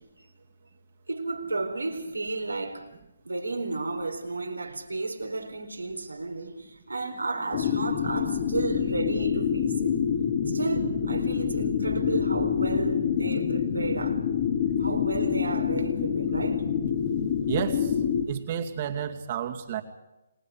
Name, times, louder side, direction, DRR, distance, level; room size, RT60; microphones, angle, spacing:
voice 1, 1.1-2.9 3.2-10.0 10.5-14.2 14.8-16.6, right 3 dB, 85° right, 4.3 m, -32 dB
sound 1, 7.5-18.2, left 8 dB, 40° left, 2.4 m, -27 dB
voice 2, 17.5-18.0 18.2-19.8, right 9 dB, 40° right, 2.5 m, -31 dB
29.5 x 20.5 x 5.0 m
figure-of-eight pair, 145°, 0 cm